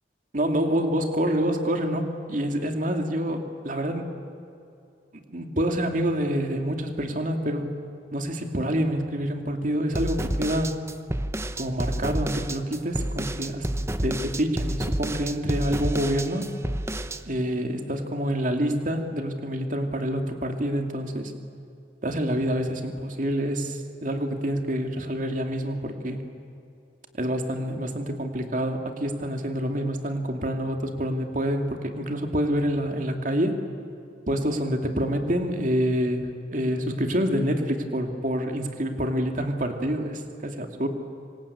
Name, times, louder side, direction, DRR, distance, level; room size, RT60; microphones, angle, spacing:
voice 1, 0.3-4.1 5.3-7.7 8.1-10.8 11.6-13.6 14.0-16.5 17.3-21.3 22.0-26.2 27.2-33.6 34.3-40.9, equal, 45° right, 4 dB, 2.4 m, -27 dB
sound 1, 9.9-17.2, right 1 dB, 15° right, 0.8 m, -29 dB
27.0 x 25.5 x 8.6 m, 2.5 s
head